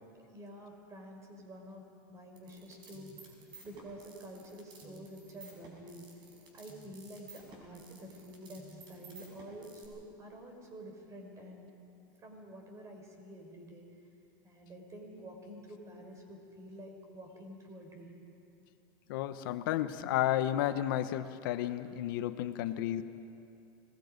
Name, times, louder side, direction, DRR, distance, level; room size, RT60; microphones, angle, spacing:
voice 1, 0.3-1.8 2.1-3.3 3.6-6.0 6.5-11.7 12.2-13.8 14.4-18.2, equal, 25° right, 2 dB, 4.4 m, -49 dB
sound 1, 2.4-9.9, right 4 dB, 45° right, 5.6 m, -54 dB
voice 2, 19.1-23.0, left 12 dB, 75° left, 11 dB, 1.0 m, -32 dB
25.5 x 19.5 x 5.3 m, 2.7 s
supercardioid pair, 125°, 11 cm